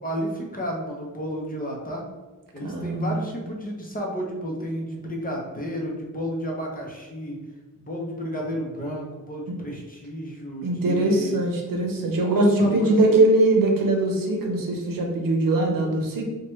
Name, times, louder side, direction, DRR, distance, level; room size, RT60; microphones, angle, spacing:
voice 1, 0.0-2.0 2.5-7.4 7.8-11.4 12.2-12.9, equal, 25° left, -1 dB, 0.6 m, -32 dB
voice 2, 2.6-3.2 9.5-9.6 10.6-16.3, right 2 dB, 75° right, 1 dB, 0.8 m, -21 dB
4.6 x 2.1 x 3.0 m, 1.3 s
wide cardioid pair, 165°, 33 cm